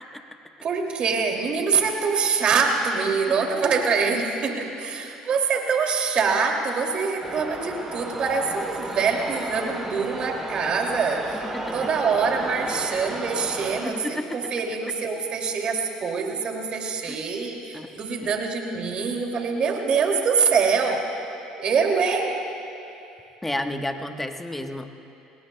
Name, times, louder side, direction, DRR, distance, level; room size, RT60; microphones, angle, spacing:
voice 1, 0.6-11.4 11.7-21.0 21.5-22.3, right 5 dB, 50° right, 1 dB, 2.5 m, -24 dB
sound 1, 7.2-13.8, right 2 dB, 15° right, 2.9 m, -33 dB
voice 2, 11.5-11.9 13.8-14.4 17.0-17.2 17.7-17.9 18.2-18.3 23.4-24.9, left 1 dB, 10° left, 6 dB, 1.1 m, -31 dB
28.0 x 19.0 x 2.2 m, 2.8 s
supercardioid pair, 80°, 2 cm